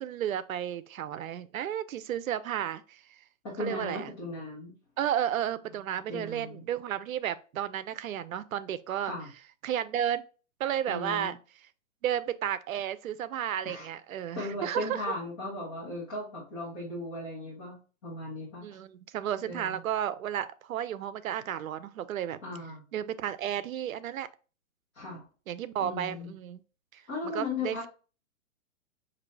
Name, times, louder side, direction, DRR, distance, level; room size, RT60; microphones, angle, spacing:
voice 1, 0.0-3.0 3.6-4.1 5.0-9.1 9.6-10.2 10.6-11.4 12.0-15.0 18.6-22.4 22.9-24.3 25.5-26.6 26.9-27.9, right 10 dB, 80° right, 0.6 m, -33 dB
voice 2, 3.4-4.7 6.1-6.6 9.0-9.3 10.9-11.3 13.6-13.9 14.4-17.8 18.0-18.6 19.4-19.8 22.4-22.8 24.9-25.2 25.8-26.3 27.1-27.9, left 2 dB, 15° left, 0.7 m, -37 dB
5.1 x 2.7 x 3.2 m
hypercardioid pair, 170°, 40 cm